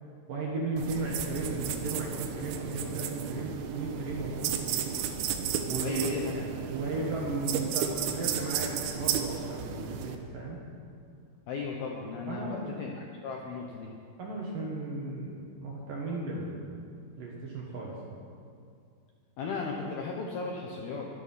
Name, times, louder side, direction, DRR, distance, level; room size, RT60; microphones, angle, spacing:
voice 1, 0.3-4.9 5.7-10.6 12.3-12.6 14.2-16.8 17.2-18.2, right 2 dB, 60° right, -3 dB, 2.5 m, -35 dB
sound 1, 0.8-10.2, right 8 dB, 90° right, 3.8 m, -33 dB
voice 2, 5.8-6.3 11.5-13.9 19.4-21.1, left 4 dB, 75° left, 0 dB, 2.3 m, -36 dB
22.5 x 10.5 x 5.7 m, 2.3 s
omnidirectional pair, 6.0 m